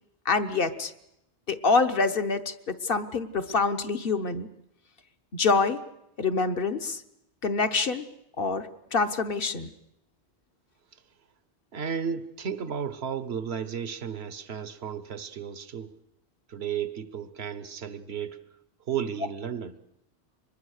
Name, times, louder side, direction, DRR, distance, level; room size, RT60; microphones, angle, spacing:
voice 1, 0.2-0.9 1.5-4.5 5.3-5.8 6.2-7.0 7.4-8.1 8.4-9.7, left 4 dB, 60° left, 7 dB, 1.2 m, -26 dB
voice 2, 11.7-15.9 16.5-18.4 18.9-19.7, right 7 dB, 80° right, 13 dB, 1.2 m, -33 dB
24.5 x 20.5 x 6.5 m, 0.81 s
omnidirectional pair, 1.1 m